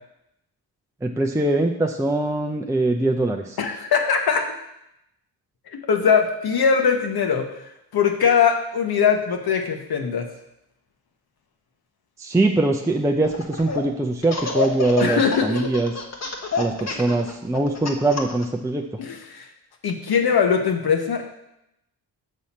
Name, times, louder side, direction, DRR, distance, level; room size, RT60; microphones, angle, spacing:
voice 1, 1.0-3.6 12.2-16.0 16.6-18.8, right 2 dB, 5° right, 1 dB, 0.5 m, -22 dB
voice 2, 3.6-4.5 5.7-7.5 7.9-10.3 15.0-15.7 16.9-17.0 19.0-19.5 19.8-21.3, left 6 dB, 60° left, 4 dB, 1.1 m, -21 dB
Laughter, 13.2-13.8 14.2-18.4, left 4 dB, 40° left, 1.1 m, -27 dB
6.5 x 5.6 x 4.2 m, 0.83 s
cardioid pair, 75°, 41 cm